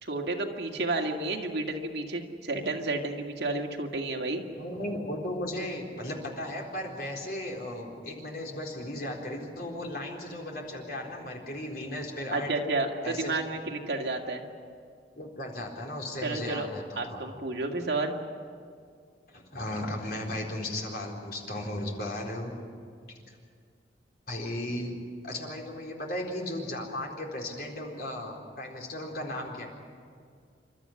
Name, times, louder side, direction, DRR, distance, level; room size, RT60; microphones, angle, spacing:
voice 1, 0.0-4.4 12.3-14.4 16.2-16.7 17.0-18.2, right 2 dB, 70° right, 1 dB, 2.2 m, -31 dB
voice 2, 4.6-12.5 13.0-13.4 15.2-17.3 19.3-22.5 24.3-24.9 25.2-29.7, left 1 dB, 55° left, 0 dB, 4.1 m, -36 dB
29.0 x 13.0 x 10.0 m, 2.2 s
head